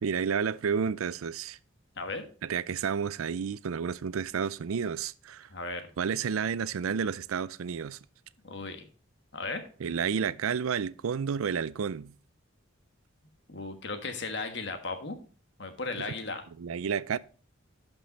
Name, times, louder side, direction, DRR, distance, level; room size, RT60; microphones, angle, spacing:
voice 1, 0.0-1.6 2.4-5.5 6.0-8.0 9.8-12.1 16.0-16.1 16.6-17.2, right 6 dB, 85° right, 0.4 m, -31 dB
voice 2, 2.0-2.3 5.5-5.9 8.4-8.8 9.3-9.6 13.5-15.2 15.6-16.4, left 3 dB, 55° left, 1.4 m, -36 dB
11.5 x 5.3 x 4.1 m
head